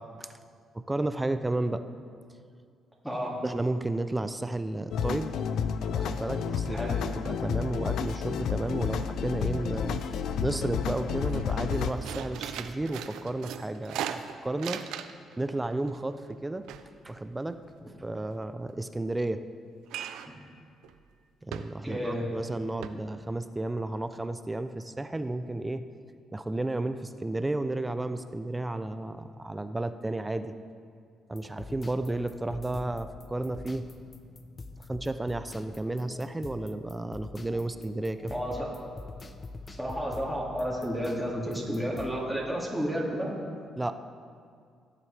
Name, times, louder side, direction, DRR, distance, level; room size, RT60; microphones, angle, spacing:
voice 1, 0.7-1.8 3.4-5.4 5.9-6.8 7.1-10.0 10.4-14.8 15.4-16.7 17.0-17.6 18.0-19.4 21.4-25.9 26.3-30.5 31.3-33.9 34.9-38.3 43.8-43.9, right 2 dB, 15° right, 10 dB, 0.4 m, -32 dB
voice 2, 3.0-3.4 6.7-7.0 20.3-20.4 21.8-22.3 38.3-38.7 39.7-43.3, equal, ahead, -4 dB, 2.2 m, -31 dB
sound 1, 4.9-11.9, left 7 dB, 75° left, 0.5 m, -31 dB
sound 2, 8.5-9.0 9.3-10.2 10.6-10.7 11.0-15.3 15.6-18.1 19.9-20.4 20.8-21.0 21.5-22.1 22.4-22.5 22.8-22.9, right 9 dB, 90° right, 0.5 m, -39 dB
sound 3, 31.3-42.4, left 3 dB, 35° left, 0.7 m, -45 dB
17.0 x 7.6 x 3.3 m, 2.2 s
cardioid pair, 90°, 0 cm